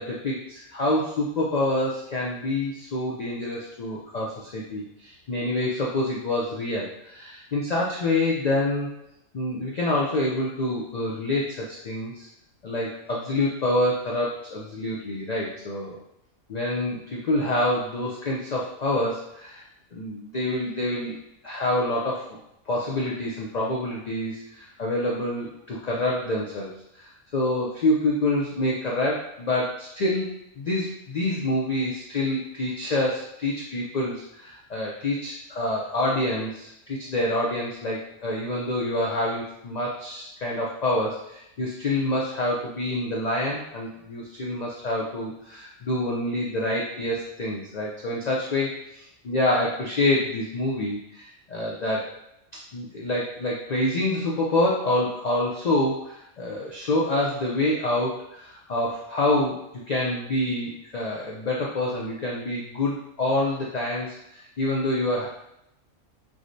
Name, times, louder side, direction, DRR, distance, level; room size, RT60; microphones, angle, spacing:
voice 1, 0.0-8.9 9.3-12.3 12.6-16.0 16.5-19.6 19.9-21.2 21.4-22.4 22.7-30.3 30.6-52.1 52.7-59.6 59.9-65.3, left 1 dB, 90° left, -4 dB, 0.3 m, -27 dB
4.6 x 2.1 x 2.6 m, 0.80 s
omnidirectional pair, 1.4 m